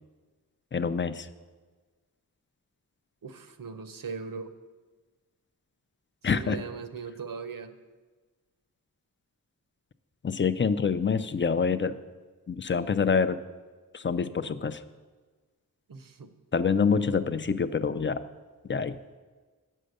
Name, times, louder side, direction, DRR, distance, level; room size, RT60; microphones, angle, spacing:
voice 1, 0.7-1.3 6.2-6.6 10.2-12.0 12.5-13.4 13.9-14.8 16.5-18.2 18.7-19.0, left 5 dB, 35° left, 13 dB, 0.4 m, -26 dB
voice 2, 3.2-4.5 6.2-7.7 15.9-16.3, right 5 dB, 65° right, 9 dB, 0.8 m, -39 dB
8.7 x 6.4 x 6.7 m, 1.4 s
wide cardioid pair, 80°, 36 cm